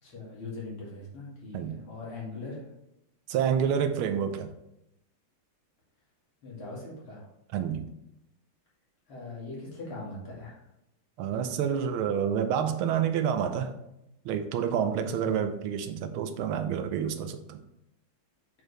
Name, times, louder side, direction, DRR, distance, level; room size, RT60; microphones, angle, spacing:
voice 1, 0.0-2.7 6.4-7.3 9.1-10.6 15.0-15.4, left 3 dB, 85° left, -6 dB, 3.2 m, -40 dB
voice 2, 3.3-4.5 7.5-7.8 11.2-13.7 14.2-17.6, right 8 dB, 90° right, 9 dB, 1.5 m, -28 dB
7.7 x 4.8 x 3.3 m, 0.84 s
omnidirectional pair, 2.3 m